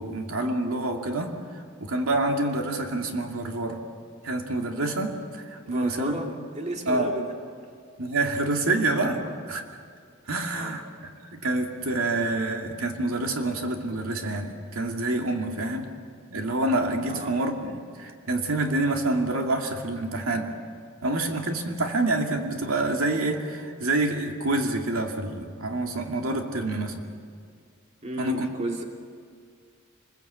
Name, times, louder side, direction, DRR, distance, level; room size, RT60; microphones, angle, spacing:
voice 1, 0.0-1.3 1.8-3.8 4.2-6.2 6.9-7.1 8.0-9.6 10.3-10.8 11.3-15.9 16.3-20.5 21.0-27.1 28.2-28.5, right 2 dB, 85° right, 3 dB, 2.5 m, -27 dB
voice 2, 5.6-6.3 6.5-7.3 9.2-9.4 10.5-10.8 15.6-15.7 17.1-17.4 28.0-28.8, right 1 dB, 35° right, 1 dB, 2.7 m, -33 dB
28.0 x 21.0 x 8.4 m, 2.1 s
head